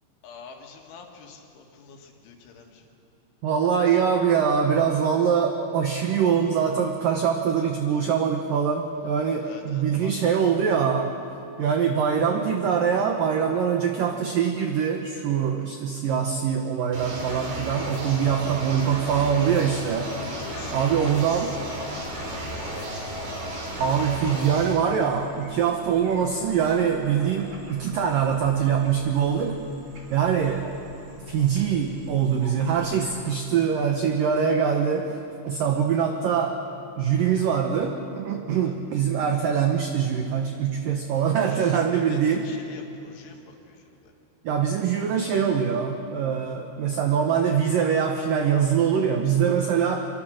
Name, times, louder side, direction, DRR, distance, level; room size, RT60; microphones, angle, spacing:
voice 1, 0.2-2.9 9.4-10.2 18.1-18.4 20.3-23.5 31.4-31.7 38.5-38.8 41.5-44.1, left 5 dB, 75° left, 2 dB, 4.3 m, -46 dB
voice 2, 3.4-11.2 11.6-20.2 20.7-21.5 23.8-29.6 30.1-30.8 31.3-36.6 37.0-42.5 44.4-50.0, right 7 dB, 80° right, 4 dB, 1.9 m, -23 dB
sound 1, 16.9-24.7, right 1 dB, 60° right, 6.6 m, -33 dB
sound 2, 21.0-33.2, right 1 dB, 40° right, 1.8 m, -48 dB
24.5 x 23.5 x 6.5 m, 2.7 s
omnidirectional pair, 5.6 m